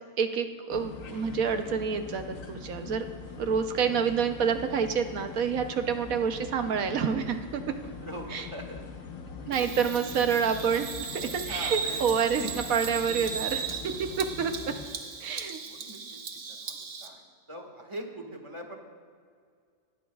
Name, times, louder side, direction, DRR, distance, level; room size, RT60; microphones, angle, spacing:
voice 1, 0.2-3.0 3.4-7.8 8.3-8.4 9.5-13.7 14.0-14.7 15.2-15.6, right 6 dB, 75° right, 7 dB, 1.2 m, -28 dB
sound 1, 0.7-14.9, left 5 dB, 70° left, 1.4 m, -43 dB
voice 2, 7.8-8.8 9.4-9.7 10.0-10.2 11.5-12.1 12.4-12.5 14.8-16.2 16.5-16.7 17.0-18.8, equal, 20° right, 2 dB, 1.7 m, -42 dB
Bird vocalization bird call bird song, 9.5-17.1, right 6 dB, 55° right, 1.2 m, -37 dB
19.0 x 12.5 x 2.4 m, 2.1 s
omnidirectional pair, 1.5 m